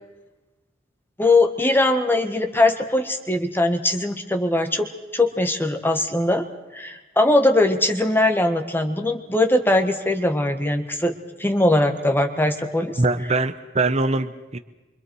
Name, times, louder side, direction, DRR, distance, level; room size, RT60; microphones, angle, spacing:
voice 1, 1.2-6.4 6.7-11.1 11.4-13.0, left 2 dB, 10° left, 6 dB, 1.4 m, -21 dB
voice 2, 13.0-14.6, right 3 dB, 35° right, 10 dB, 0.8 m, -22 dB
29.0 x 25.0 x 4.7 m, 1.1 s
head